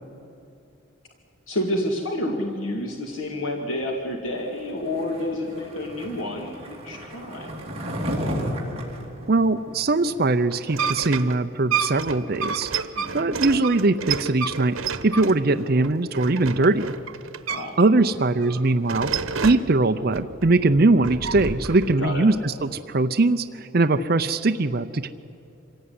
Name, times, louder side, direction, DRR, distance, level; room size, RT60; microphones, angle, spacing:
voice 1, 1.5-7.5 13.0-13.3 15.6-15.9 16.6-16.7 17.5-17.7 22.0-22.2, left 1 dB, 75° left, 1 dB, 2.4 m, -29 dB
Skateboard, 4.9-10.3, equal, 30° right, 3.3 m, -33 dB
voice 2, 9.3-12.7 13.1-16.9 17.8-19.1 19.4-25.1, right 2 dB, 45° right, 6 dB, 0.6 m, -21 dB
sound 1, 10.5-17.9 18.2-19.7 20.1-22.0, right 6 dB, 90° right, 1.1 m, -30 dB
25.0 x 17.0 x 9.6 m, 2.8 s
head